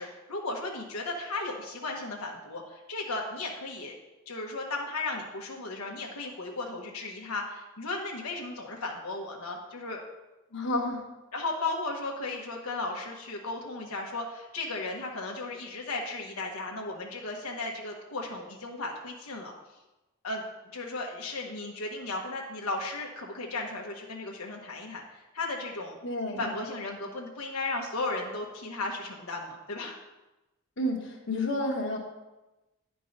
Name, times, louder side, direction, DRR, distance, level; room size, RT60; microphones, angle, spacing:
voice 1, 0.0-3.9 4.3-10.0 11.3-19.5 20.2-20.4 20.7-26.0 26.4-30.0, left 2 dB, 85° left, -1 dB, 1.1 m, -35 dB
voice 2, 10.5-11.1 26.0-26.4 30.8-32.0, left 1 dB, 55° left, 0 dB, 1.4 m, -30 dB
10.0 x 4.6 x 5.3 m, 1.0 s
head